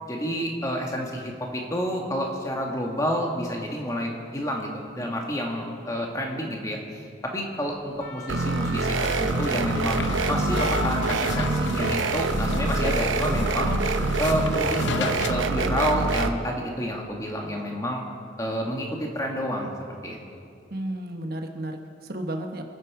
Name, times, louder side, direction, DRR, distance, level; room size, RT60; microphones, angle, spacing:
voice 1, 0.1-4.7 4.9-6.8 7.2-10.0 10.3-18.0 18.4-19.7 20.0-20.2, equal, 15° left, 0 dB, 1.9 m, -29 dB
sound 1, 7.7-12.5 12.9-13.1, left 4 dB, 45° left, 1.3 m, -39 dB
sound 2, 8.3-16.3, right 3 dB, 85° right, 0.9 m, -25 dB
sound 3, 9.0-15.3, left 4 dB, 70° left, 0.7 m, -35 dB
voice 2, 20.7-22.6, right 1 dB, 50° right, 4 dB, 1.2 m, -33 dB
27.0 x 9.7 x 4.9 m, 2.4 s
head